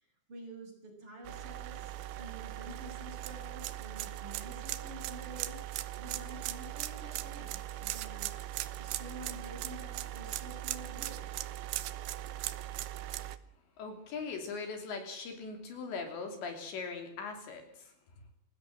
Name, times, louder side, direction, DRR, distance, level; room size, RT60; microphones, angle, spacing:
voice 1, 0.3-5.6 6.0-8.4 8.8-11.3, right 1 dB, 25° right, 2 dB, 7.6 m, -49 dB
sound 1, 1.2-13.4, right 14 dB, 75° right, 3.1 m, -39 dB
voice 2, 13.8-17.9, left 4 dB, 65° left, 5 dB, 5.1 m, -40 dB
27.0 x 16.5 x 7.7 m, 0.65 s
omnidirectional pair, 5.7 m